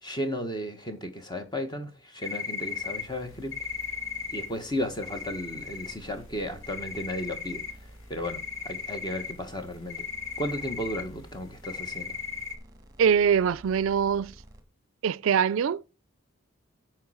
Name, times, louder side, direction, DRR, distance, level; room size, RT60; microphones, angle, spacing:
voice 1, 0.0-3.6 4.3-10.1 10.4-12.2, equal, 20° left, 1.3 m, -34 dB
sound 1, 2.2-3.1 3.5-6.0 6.2-7.7 8.0-12.6, left 6 dB, 80° left, 1.3 m, -36 dB
sound 2, 2.6-14.6, equal, 20° right, 1.6 m, -51 dB
voice 2, 13.0-14.3 15.0-15.8, right 7 dB, 80° right, 0.4 m, -23 dB
9.4 x 4.6 x 6.3 m
head